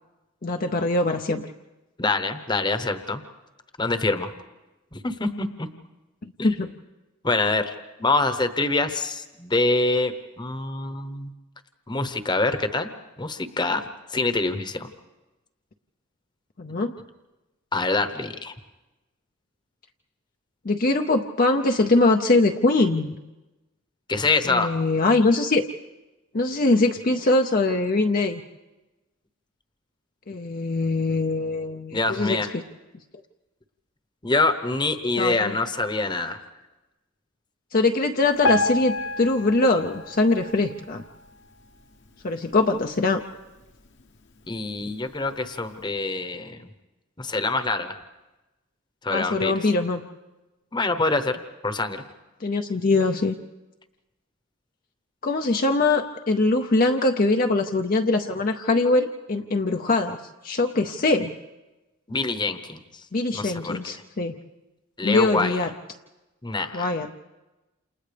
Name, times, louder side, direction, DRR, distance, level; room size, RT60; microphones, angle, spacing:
voice 1, 0.4-1.5 6.4-6.7 16.6-16.9 20.6-23.2 24.4-25.6 26.3-28.4 30.3-32.6 35.2-35.6 37.7-41.0 42.2-43.2 49.1-50.0 52.4-53.4 55.2-61.3 63.1-64.3 65.0-65.7 66.7-67.1, left 2 dB, 40° left, 4 dB, 0.6 m, -22 dB
voice 2, 2.0-3.2 3.8-4.3 4.9-5.7 6.4-6.5 7.2-7.7 8.0-11.3 11.9-12.9 13.2-13.8 14.1-14.9 17.7-18.5 24.1-24.7 31.9-32.5 34.2-36.4 44.5-46.7 47.2-48.0 49.0-49.5 50.7-52.0 62.1-62.8 63.3-63.7 65.0-65.6 66.4-66.8, left 3 dB, 20° left, 9 dB, 1.0 m, -25 dB
Piano, 38.4-41.5 42.1-42.2 42.5-42.6 43.3-43.4 44.0-44.1, left 2 dB, 55° left, 1.0 m, -29 dB
28.5 x 28.5 x 3.4 m, 1.1 s
head